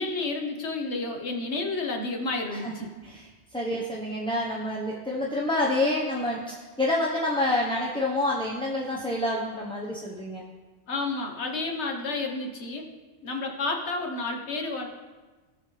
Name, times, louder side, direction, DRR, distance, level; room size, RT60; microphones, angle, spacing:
voice 1, 0.0-2.9 10.9-12.9 13.2-14.9, left 3 dB, 70° left, 2 dB, 1.4 m, -30 dB
voice 2, 3.0-10.4, left 1 dB, 5° left, -4 dB, 0.8 m, -28 dB
17.0 x 5.9 x 3.3 m, 1.3 s
omnidirectional pair, 1.2 m